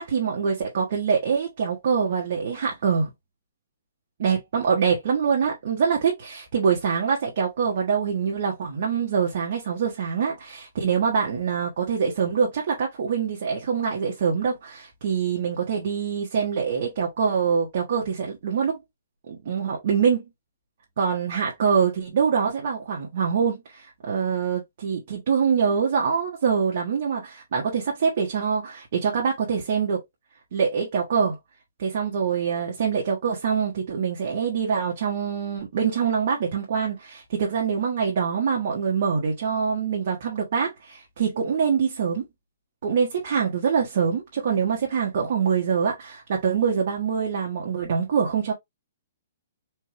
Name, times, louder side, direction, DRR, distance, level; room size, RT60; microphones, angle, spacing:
voice 1, 0.0-3.1 4.2-18.8 19.3-20.2 21.0-30.0 30.5-31.4 31.8-42.2 42.8-48.5, right 6 dB, 65° right, 1.2 m, -24 dB
4.5 x 2.2 x 3.3 m
hypercardioid pair, 125°, 0 cm